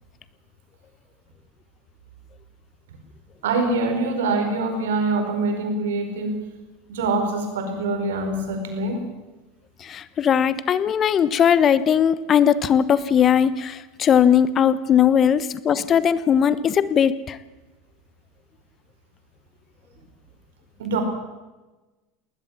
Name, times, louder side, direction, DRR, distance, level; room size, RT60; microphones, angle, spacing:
voice 1, 3.4-6.4 6.9-9.0 20.8-21.0, right 3 dB, 75° right, 6 dB, 5.1 m, -24 dB
voice 2, 9.8-17.4, left 8 dB, 35° left, 16 dB, 1.1 m, -19 dB
20.0 x 20.0 x 7.5 m, 1.1 s
hypercardioid pair, 85°, 0 cm